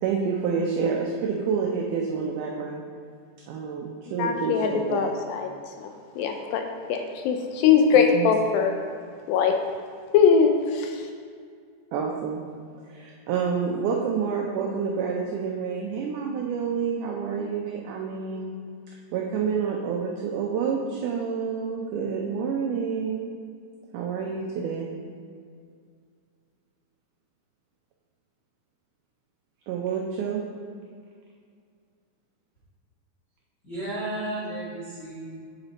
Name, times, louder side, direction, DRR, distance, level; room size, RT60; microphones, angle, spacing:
voice 1, 0.0-2.8 3.5-5.1 8.1-8.3 11.9-12.4 12.8-18.5 19.1-23.2 23.9-24.9 29.7-30.4, right 6 dB, 85° right, -1 dB, 1.8 m, -28 dB
voice 2, 4.2-5.5 5.8-5.9 6.2-6.6 6.9-8.7 9.3-9.5 10.1-11.0, left 6 dB, 80° left, 4 dB, 2.2 m, -21 dB
voice 3, 33.6-35.3, right 1 dB, 45° left, -10 dB, 0.8 m, -33 dB
8.1 x 4.1 x 4.0 m, 2.2 s
omnidirectional pair, 4.2 m